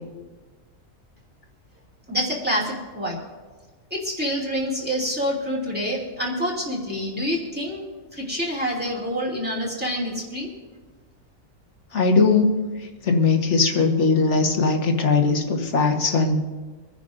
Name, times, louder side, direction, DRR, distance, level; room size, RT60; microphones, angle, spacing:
voice 1, 2.1-3.2 3.9-7.8 8.2-10.5, equal, 5° right, -3 dB, 2.6 m, -27 dB
voice 2, 11.9-12.5 13.0-16.4, left 4 dB, 60° left, 3 dB, 1.7 m, -19 dB
25.5 x 10.0 x 2.6 m, 1.3 s
omnidirectional pair, 1.4 m